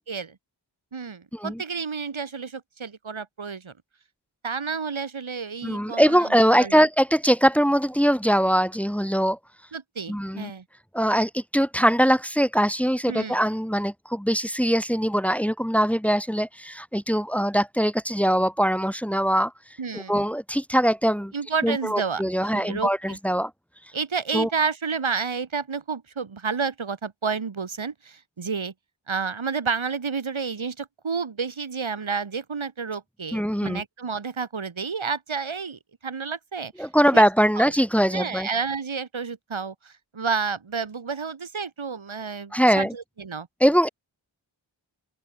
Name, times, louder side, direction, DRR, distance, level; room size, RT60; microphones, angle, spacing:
voice 1, 0.9-3.7 4.4-6.9 9.7-10.6 13.1-13.4 19.8-20.1 21.3-23.2 23.9-28.7 29.1-36.9 37.1-37.2 37.5-37.7 38.1-43.5, right 5 dB, 75° right, 3.8 m, -30 dB
voice 2, 5.6-9.4 10.1-10.5 10.9-19.5 19.9-21.3 21.6-23.5 24.3-24.5 33.3-33.8 36.8-38.5 42.5-42.9 43.6-43.9, equal, 5° left, 2.4 m, -22 dB
open air
cardioid pair, 40°, 48 cm